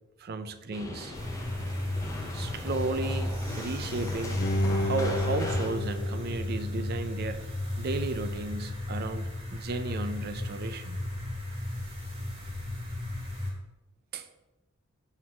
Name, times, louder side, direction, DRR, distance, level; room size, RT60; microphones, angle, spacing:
voice 1, 0.2-1.1 2.3-4.5 4.8-7.4 7.8-11.0 14.1-14.5, right 3 dB, 45° right, 10 dB, 0.5 m, -34 dB
sound 1, 0.7-5.7, left 1 dB, 15° left, 0.8 m, -39 dB
sound 2, 1.1-13.5, left 1 dB, 25° right, 1.7 m, -35 dB
Bowed string instrument, 4.4-7.5 7.9-8.0, left 1 dB, 45° left, 0.6 m, -31 dB
6.0 x 4.0 x 6.0 m, 1.0 s
head